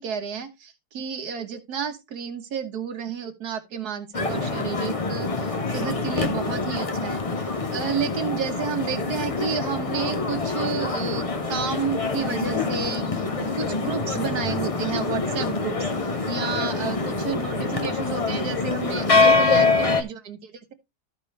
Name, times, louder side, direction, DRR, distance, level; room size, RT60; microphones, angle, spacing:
voice 1, 0.0-7.2 7.7-13.3 13.6-20.7, right 7 dB, 75° right, 1.6 m, -31 dB
sound 1, 4.1-20.0, left 3 dB, 30° left, 0.8 m, -25 dB
Bass guitar, 12.2-18.4, left 7 dB, 65° left, 1.7 m, -41 dB
13.5 x 5.2 x 3.2 m
omnidirectional pair, 1.7 m